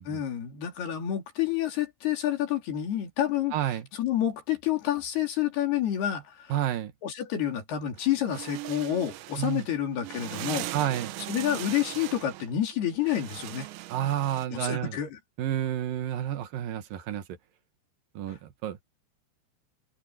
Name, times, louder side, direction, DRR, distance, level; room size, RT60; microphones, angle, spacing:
voice 1, 0.1-3.5 3.9-6.6 7.0-10.7 11.3-13.7 14.5-15.2 18.3-18.4, left 11 dB, 60° left, 4.6 m, -29 dB
voice 2, 3.5-3.9 6.5-6.9 9.4-9.7 10.7-11.1 13.9-15.0 15.4-17.2 18.1-18.8, right 11 dB, 60° right, 2.7 m, -30 dB
sound 1, 8.0-14.5, right 16 dB, 75° right, 3.2 m, -39 dB
omnidirectional pair, 5.4 m